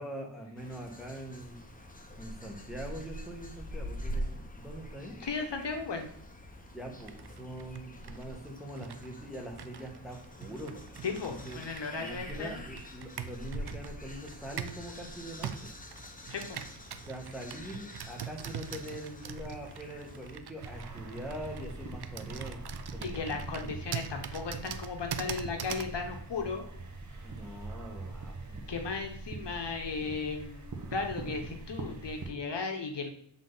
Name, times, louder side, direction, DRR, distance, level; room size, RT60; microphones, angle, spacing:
voice 1, 0.0-1.6 2.2-5.2 6.7-10.9 11.2-11.6 12.0-15.7 17.1-22.6 22.9-23.7 27.2-28.6, right 1 dB, ahead, 0 dB, 1.4 m, -43 dB
sound 1, 0.6-20.4, equal, 15° left, 0.9 m, -45 dB
voice 2, 5.2-6.1 11.0-12.6 16.3-16.6 23.0-26.6 28.7-30.6 30.9-33.1, left 4 dB, 60° left, 4 dB, 1.0 m, -36 dB
Computer keyboard, 7.0-14.9 15.4-25.9, right 8 dB, 55° right, 0.6 m, -43 dB
sound 2, 20.5-32.3, right 3 dB, 40° right, 1.2 m, -43 dB
7.5 x 3.8 x 3.9 m, 0.65 s
wide cardioid pair, 85°, 47 cm